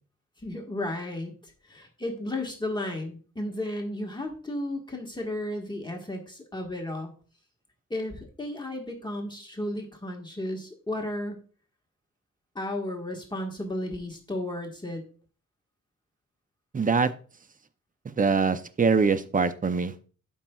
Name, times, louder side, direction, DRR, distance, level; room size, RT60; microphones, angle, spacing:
voice 1, 0.4-7.1 7.9-11.4 12.5-15.0, left 1 dB, 15° left, 0 dB, 1.5 m, -34 dB
voice 2, 16.7-17.1 18.1-20.1, right 5 dB, 25° right, 12 dB, 0.6 m, -24 dB
12.0 x 5.5 x 2.3 m, 0.40 s
wide cardioid pair, 125°, 31 cm